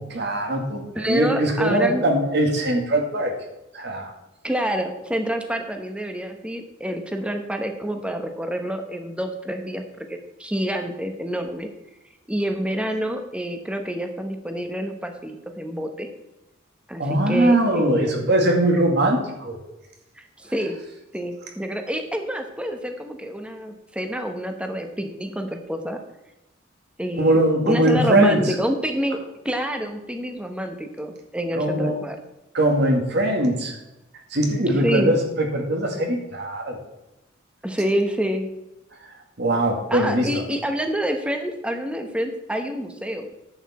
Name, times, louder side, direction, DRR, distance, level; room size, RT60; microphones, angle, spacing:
voice 1, 0.0-3.3 3.7-4.1 17.0-19.6 27.2-28.5 31.5-32.0 32.5-33.8 34.3-36.8 39.4-40.3, right 1 dB, 55° right, 2 dB, 2.1 m, -21 dB
voice 2, 0.9-2.0 4.4-11.7 12.3-16.1 16.9-18.3 20.2-20.8 21.1-26.0 27.0-29.2 29.4-32.2 34.8-35.1 37.6-38.5 39.9-43.3, equal, 5° right, 5 dB, 1.0 m, -27 dB
11.0 x 8.2 x 4.3 m, 0.94 s
head